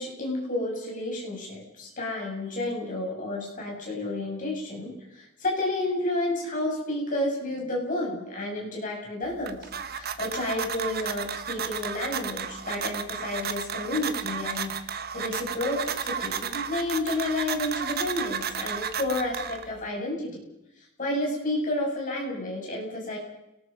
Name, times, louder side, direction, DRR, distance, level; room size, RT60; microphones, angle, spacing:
voice 1, 0.0-9.6 9.9-20.4 21.0-23.2, left 1 dB, 35° left, -1 dB, 7.8 m, -31 dB
sound 1, 9.2-19.9, right 7 dB, 45° right, 1.3 m, -33 dB
29.5 x 20.0 x 5.5 m, 0.88 s
head